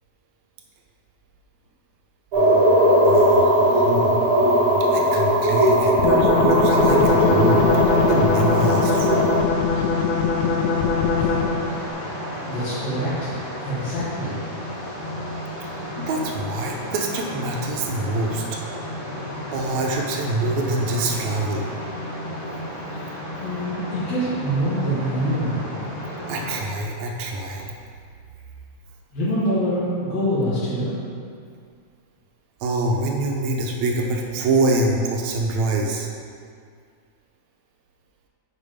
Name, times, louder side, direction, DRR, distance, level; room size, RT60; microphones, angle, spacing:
sound 1, 2.3-9.4, right 1 dB, 50° right, 2.3 m, -18 dB
voice 1, 3.0-4.2 4.9-7.6 8.1-9.3 15.6-15.7 16.0-18.4 19.5-21.7 26.3-27.7 32.6-36.1, right 2 dB, 80° right, 1 dB, 1.9 m, -25 dB
sound 2, 6.0-11.7, left 5 dB, 90° left, 2.0 m, -21 dB
sound 3, 6.9-26.6, left 1 dB, 30° left, 1.0 m, -33 dB
voice 2, 12.5-13.4 13.6-14.3 23.4-25.6 29.1-30.9, equal, 60° left, -12 dB, 2.7 m, -25 dB
6.7 x 5.3 x 4.9 m, 2.2 s
omnidirectional pair, 3.4 m